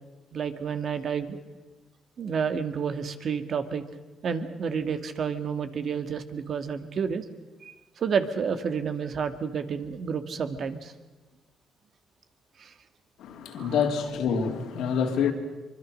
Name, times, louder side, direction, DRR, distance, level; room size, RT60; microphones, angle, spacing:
voice 1, 0.3-1.4 2.2-3.8 4.2-7.2 7.6-10.9 12.6-12.7 13.6-13.8, right 6 dB, 55° right, 2.1 m, -30 dB
voice 2, 13.2-15.3, left 7 dB, 85° left, 3.5 m, -27 dB
24.5 x 24.0 x 6.6 m
cardioid pair, 90°, 0 cm